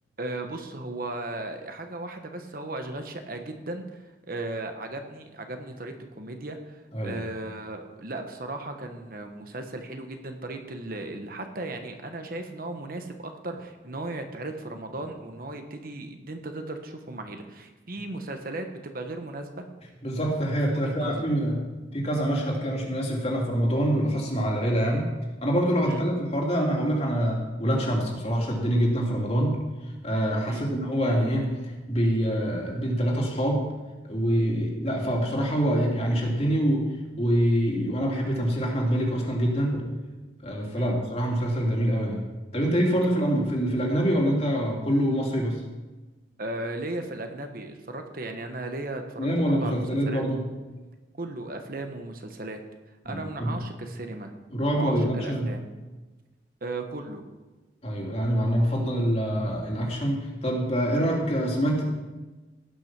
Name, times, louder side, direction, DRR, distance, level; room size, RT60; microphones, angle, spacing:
voice 1, 0.2-19.6 20.7-21.4 25.8-26.0 30.5-30.7 40.7-40.9 46.4-50.2 51.2-52.6 53.0-54.3 54.7-55.6 56.6-57.2, right 2 dB, 50° right, 5 dB, 1.2 m, -36 dB
voice 2, 20.0-21.6 21.9-25.1 25.4-29.6 30.0-33.6 34.1-36.9 37.2-39.8 40.4-42.2 42.5-45.6 49.2-50.4 53.0-53.5 54.5-55.5 57.8-61.8, equal, 35° left, -1 dB, 2.8 m, -25 dB
18.0 x 6.2 x 6.0 m, 1.2 s
head